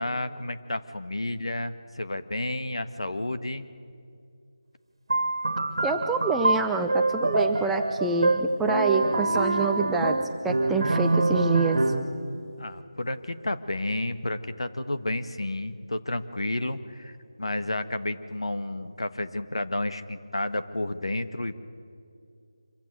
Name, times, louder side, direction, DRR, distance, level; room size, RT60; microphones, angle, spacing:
voice 1, 0.0-3.7 12.6-21.5, left 1 dB, 70° left, 10 dB, 1.5 m, -31 dB
sound 1, 5.1-12.2, right 2 dB, 60° right, 1.7 m, -25 dB
voice 2, 5.8-10.2 10.4-11.8, right 4 dB, 5° right, 4 dB, 0.4 m, -27 dB
25.5 x 15.0 x 9.2 m, 2.5 s
figure-of-eight pair, 165°, 3 cm